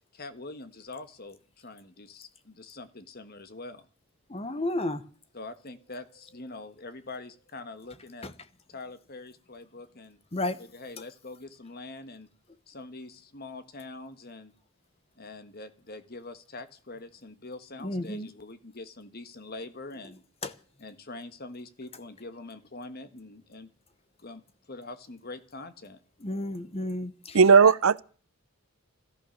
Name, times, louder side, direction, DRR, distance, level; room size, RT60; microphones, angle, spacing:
voice 1, 0.1-3.9 5.3-8.3 8.7-10.2 10.6-12.3 12.7-14.5 15.1-20.2 20.8-23.7 24.2-24.4 24.7-26.0, left 2 dB, 45° left, 1.5 m, -44 dB
voice 2, 4.3-5.0 8.2-8.3 10.3-10.6 17.8-18.3 20.4-20.5 26.2-27.4, left 1 dB, 30° left, 1.1 m, -32 dB
voice 3, 27.3-28.0, right 5 dB, 75° right, 0.7 m, -16 dB
14.5 x 13.5 x 6.5 m
head